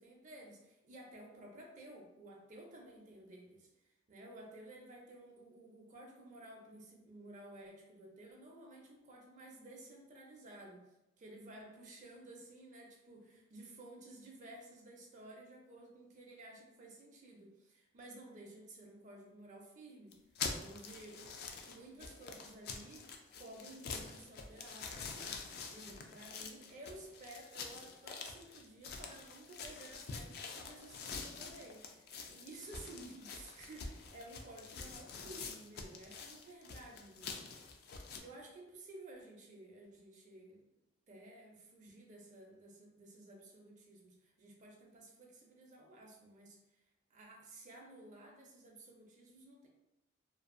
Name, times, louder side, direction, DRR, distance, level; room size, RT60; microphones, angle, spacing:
voice 1, 0.0-10.8 11.2-20.1 20.5-21.2 21.7-23.1 23.4-25.4 25.7-37.5 38.1-40.6 41.1-46.8 47.1-49.7, right 1 dB, 40° right, 0 dB, 0.4 m, -54 dB
sound 1, 20.1-38.2, left 5 dB, 55° left, 0.3 m, -46 dB
2.6 x 2.3 x 2.4 m, 0.93 s
head